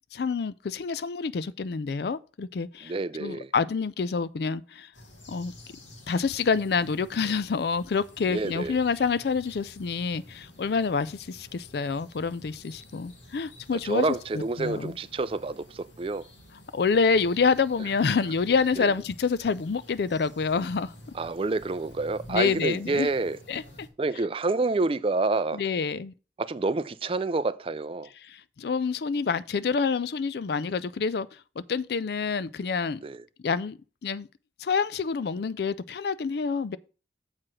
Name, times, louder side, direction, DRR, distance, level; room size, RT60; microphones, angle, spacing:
voice 1, 0.1-2.9 3.2-4.9 5.3-5.5 6.1-14.0 14.6-14.9 16.7-20.9 22.3-23.1 23.5-23.9 25.5-26.1 28.3-31.3 31.7-33.0 33.4-34.3 34.6-36.8, left 5 dB, 60° left, 0.4 m, -27 dB
voice 2, 2.8-3.5 8.3-8.8 13.8-16.3 18.8-18.9 21.1-23.4 24.0-25.6 26.4-28.1 33.0-33.2, right 3 dB, 30° right, 0.4 m, -28 dB
sound 1, 4.9-23.9, left 1 dB, 85° left, 2.2 m, -50 dB
7.4 x 4.7 x 6.1 m
head